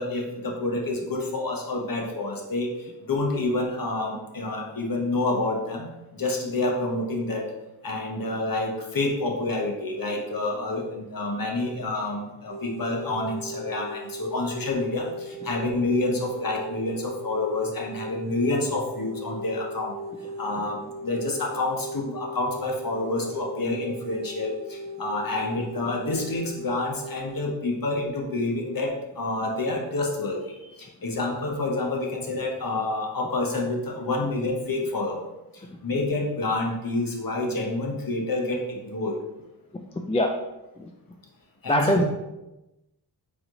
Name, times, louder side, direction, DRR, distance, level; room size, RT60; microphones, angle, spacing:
voice 1, 0.0-7.5 7.8-20.0 20.4-35.3 35.5-39.2 41.6-42.0, left 2 dB, 50° left, 0 dB, 1.2 m, -28 dB
sound 1, 12.5-27.5, equal, 70° right, 0.5 m, -38 dB
voice 2, 41.7-42.0, left 1 dB, 15° left, 3 dB, 0.4 m, -22 dB
4.1 x 3.1 x 3.9 m, 0.97 s
cardioid pair, 45°, 44 cm